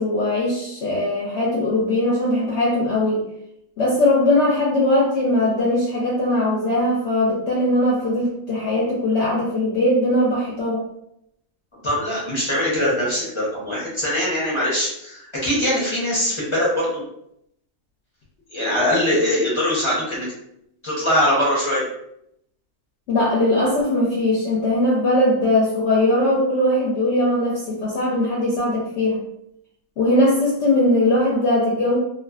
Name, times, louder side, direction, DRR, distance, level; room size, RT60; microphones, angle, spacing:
voice 1, 0.0-3.2 3.8-10.8 23.1-29.2 30.0-32.0, left 1 dB, 60° left, -5 dB, 0.8 m, -20 dB
voice 2, 11.8-17.0 18.5-20.3 20.8-21.8, left 1 dB, 30° left, -6 dB, 0.6 m, -22 dB
2.4 x 2.3 x 2.3 m, 0.77 s
omnidirectional pair, 1.5 m